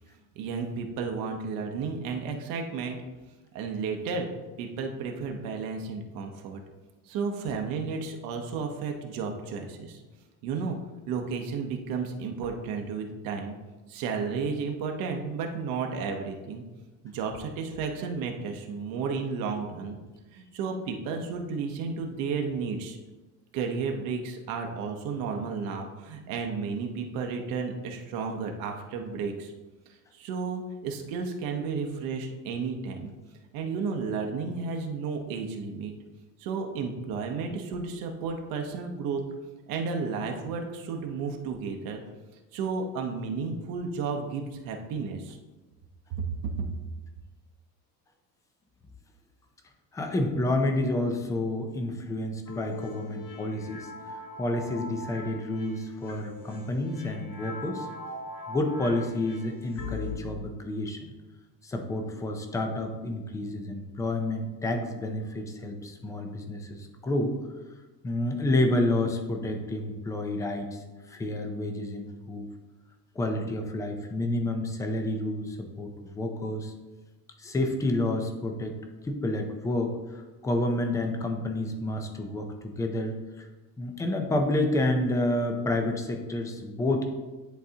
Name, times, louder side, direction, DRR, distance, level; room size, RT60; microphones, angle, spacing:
voice 1, 0.4-3.0 3.5-4.3 4.6-6.6 7.1-10.0 10.4-10.8 11.1-13.6 13.9-16.6 17.0-20.0 20.3-23.0 23.5-29.5 30.1-33.1 33.5-35.9 36.4-39.2 39.7-42.0 42.5-45.4 46.2-46.3 46.6-46.7, right 5 dB, 60° right, 3 dB, 0.9 m, -32 dB
voice 2, 49.9-57.9 58.5-61.1 61.6-67.4 68.0-70.8 71.1-72.5 73.2-76.7 77.4-78.8 79.0-83.5 83.8-87.0, left 1 dB, 10° left, 4 dB, 0.4 m, -29 dB
sound 1, 52.5-60.1, left 2 dB, 35° left, 1.0 m, -41 dB
10.5 x 4.0 x 2.8 m, 1.2 s
cardioid pair, 165°, 38 cm